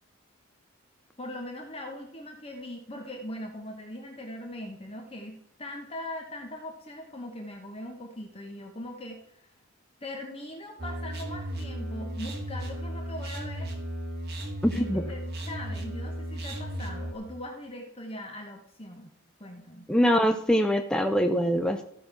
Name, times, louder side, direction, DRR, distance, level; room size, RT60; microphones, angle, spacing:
voice 1, 1.2-9.5 10.0-13.7 14.7-15.2 15.5-19.1 19.4-19.9, left 1 dB, 25° left, 2 dB, 1.0 m, -40 dB
sound 1, 10.8-17.1, right 1 dB, 45° right, 1.9 m, -35 dB
voice 2, 14.6-15.0 19.9-21.8, equal, 5° left, 5 dB, 0.4 m, -23 dB
13.5 x 5.2 x 5.9 m, 0.73 s
head